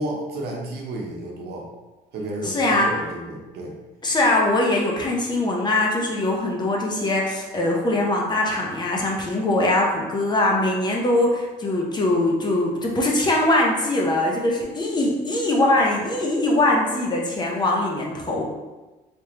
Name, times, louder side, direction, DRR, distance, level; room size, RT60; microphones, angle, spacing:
voice 1, 0.0-1.7 2.1-3.7, right 1 dB, 70° right, -1 dB, 0.8 m, -31 dB
voice 2, 2.4-2.9 4.0-18.4, left 1 dB, 25° left, -1 dB, 0.7 m, -22 dB
3.4 x 3.0 x 2.9 m, 1.1 s
cardioid pair, 110°, 17 cm